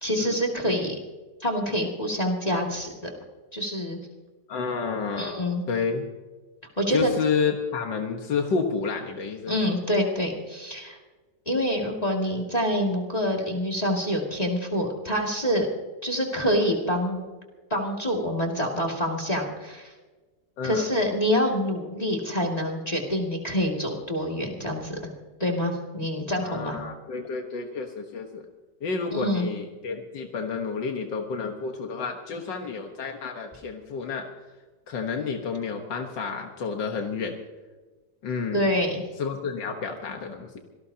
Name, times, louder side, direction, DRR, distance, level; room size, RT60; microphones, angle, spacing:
voice 1, 0.0-0.9 1.4-2.9 3.5-4.0 5.2-5.6 6.8-7.1 9.5-11.0 11.5-15.7 16.0-17.2 17.7-19.9 20.6-25.1 25.4-26.8 29.1-29.5 38.5-39.0, equal, 20° left, -1 dB, 2.4 m, -26 dB
voice 2, 4.5-5.3 5.7-6.1 6.9-9.8 20.6-20.9 26.4-28.5 28.8-34.3 34.9-37.4 38.2-38.7 39.2-40.6, left 5 dB, 85° left, 3 dB, 2.0 m, -30 dB
26.0 x 18.5 x 2.8 m, 1.3 s
omnidirectional pair, 1.9 m